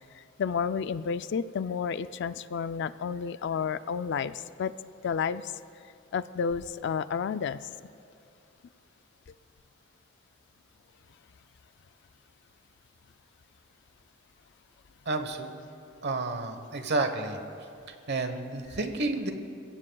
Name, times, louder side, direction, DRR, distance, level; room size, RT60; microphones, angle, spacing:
voice 1, 0.1-4.7 5.0-5.5 6.1-7.7, left 6 dB, 60° left, 13 dB, 0.4 m, -31 dB
voice 2, 15.0-15.5 16.0-17.4 17.9-19.3, right 3 dB, 55° right, 7 dB, 1.1 m, -30 dB
29.0 x 16.0 x 2.3 m, 2.6 s
head